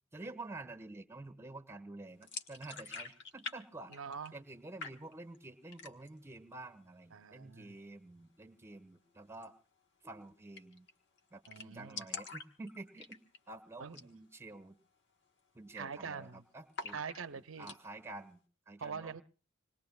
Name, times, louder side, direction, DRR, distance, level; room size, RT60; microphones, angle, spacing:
voice 1, 0.1-3.9 4.3-9.5 10.0-10.9 11.3-14.8 15.5-17.0 17.3-19.1, right 2 dB, 15° right, 6 dB, 1.3 m, -49 dB
sound 1, 2.2-3.6 3.8-4.5 4.8-5.4 5.7-6.2 6.6-6.7 7.0-7.6 9.3-9.5 9.8-9.9 10.1-10.2 10.6-10.9 11.2-11.3 11.4-13.5 13.9-14.1 14.5-14.6 15.1-15.4 15.6-16.3 16.7-17.8, left 4 dB, 60° left, 1.3 m, -46 dB
voice 2, 3.9-4.3 7.1-7.7 11.5-12.1 13.8-14.0 15.8-16.4 16.9-17.7 18.8-19.2, right 6 dB, 80° right, 11 dB, 0.7 m, -44 dB
26.5 x 20.5 x 2.4 m, 0.39 s
head